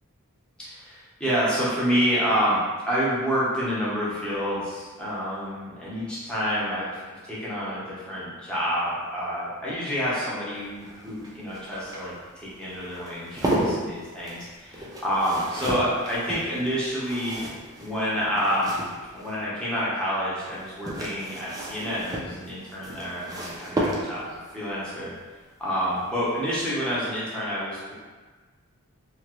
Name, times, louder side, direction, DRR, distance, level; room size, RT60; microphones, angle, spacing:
voice 1, 0.6-2.6 2.9-17.4 17.8-18.8 19.1-25.1 25.6-27.9, equal, 5° left, -9 dB, 0.8 m, -28 dB
sound 1, 10.6-19.4 20.5-24.4 26.1-26.4 26.6-26.7, right 1 dB, 15° right, 0.4 m, -33 dB
2.8 x 2.3 x 3.0 m, 1.4 s
head